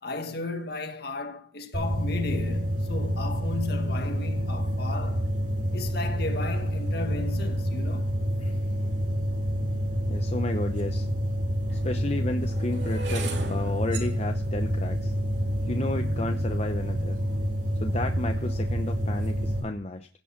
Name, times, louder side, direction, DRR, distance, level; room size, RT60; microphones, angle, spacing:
voice 1, 0.0-5.3 5.7-8.1 11.4-11.8, left 3 dB, 60° left, 1.7 m, -35 dB
sound 1, 1.7-19.6, equal, 45° right, 6.2 m, -28 dB
voice 2, 10.1-11.1 11.8-15.1 15.7-17.2 17.8-20.1, left 2 dB, 35° left, 0.8 m, -32 dB
sound 2, 10.8-10.9 11.6-17.8 18.4-18.8 19.1-19.4, right 3 dB, 70° right, 2.5 m, -40 dB
16.5 x 7.0 x 5.8 m
head